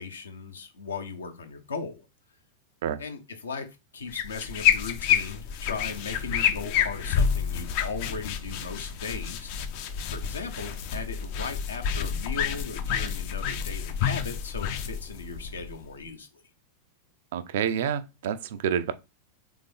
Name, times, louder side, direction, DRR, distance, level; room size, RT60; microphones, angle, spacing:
voice 1, 0.0-2.1 3.0-9.5 10.1-16.4, left 4 dB, 70° left, 0.9 m, -37 dB
sound 1, 4.1-16.0, left 8 dB, 45° left, 0.6 m, -29 dB
voice 2, 17.3-18.9, right 8 dB, 55° right, 0.4 m, -28 dB
3.7 x 3.5 x 3.5 m
figure-of-eight pair, 90°, 0 cm